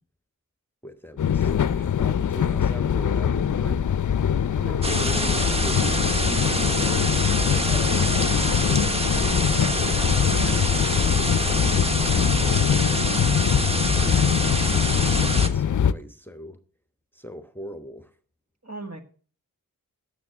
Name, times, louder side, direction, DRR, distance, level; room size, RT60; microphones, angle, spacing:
voice 1, 0.8-3.8 4.5-6.9 7.4-8.3 8.7-10.2 10.9-13.2 13.8-16.6 17.1-18.2, equal, 5° left, 9 dB, 1.0 m, -41 dB
sound 1, 1.2-15.9, left 8 dB, 60° left, 0.5 m, -23 dB
voice 2, 4.6-5.0 10.3-10.8 18.6-19.0, right 2 dB, 50° right, 6 dB, 1.8 m, -38 dB
sound 2, 4.8-15.5, right 1 dB, 15° right, 1.2 m, -26 dB
9.6 x 7.3 x 6.2 m, 0.41 s
cardioid pair, 45°, 34 cm